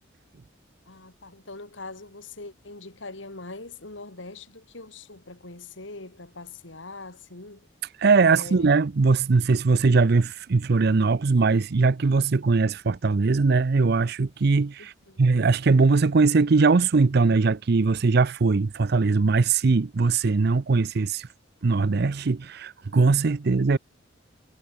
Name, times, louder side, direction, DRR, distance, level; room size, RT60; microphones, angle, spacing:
voice 1, 0.9-7.7 8.3-8.8 14.8-15.3, left 3 dB, 70° left, 2.8 m, -42 dB
voice 2, 8.0-14.9 15.2-21.3 21.6-23.8, right 4 dB, 55° right, 0.5 m, -21 dB
head